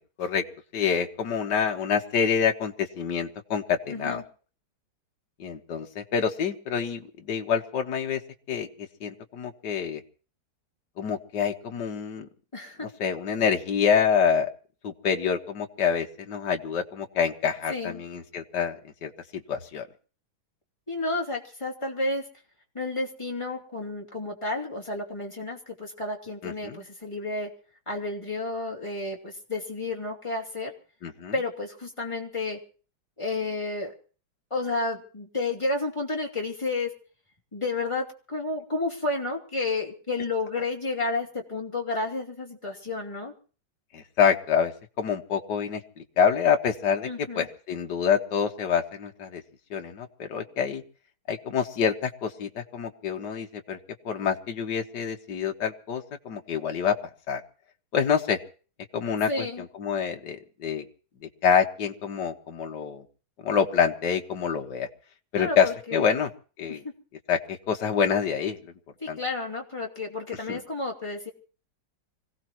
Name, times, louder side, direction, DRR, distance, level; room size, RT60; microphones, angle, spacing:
voice 1, 0.7-4.2 5.4-8.2 8.5-10.0 11.0-12.3 12.8-14.5 14.8-19.9 26.4-26.8 31.0-31.3 43.9-49.4 49.7-50.8 51.3-53.8 54.1-57.0 57.3-57.4 57.9-58.4 58.9-60.9 61.2-63.0 63.4-64.9 65.3-66.3 66.6-66.8 67.3-68.7 69.1-69.2 70.5-70.6, left 7 dB, 60° left, 4 dB, 1.9 m, -27 dB
voice 2, 3.9-4.2 12.5-12.9 17.7-18.0 20.9-22.2 22.7-27.5 27.9-30.7 31.3-32.6 33.2-33.9 34.5-36.9 37.5-43.3 47.0-47.5 59.3-59.6 65.3-66.1 66.7-66.8 69.0-71.3, left 3 dB, 15° left, -2 dB, 2.9 m, -31 dB
25.5 x 16.5 x 3.0 m, 0.39 s
omnidirectional pair, 2.2 m